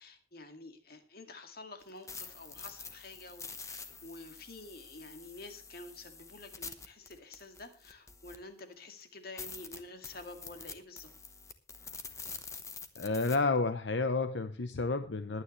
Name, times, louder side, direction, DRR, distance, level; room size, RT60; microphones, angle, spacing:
voice 1, 0.0-11.1, left 2 dB, 55° left, 6 dB, 2.1 m, -49 dB
sound 1, 1.8-8.6 9.0-9.1 9.4-13.4, left 5 dB, 15° left, 1.1 m, -47 dB
voice 2, 13.0-15.4, left 3 dB, 80° left, 9 dB, 0.8 m, -30 dB
21.5 x 9.4 x 3.2 m, 0.32 s
head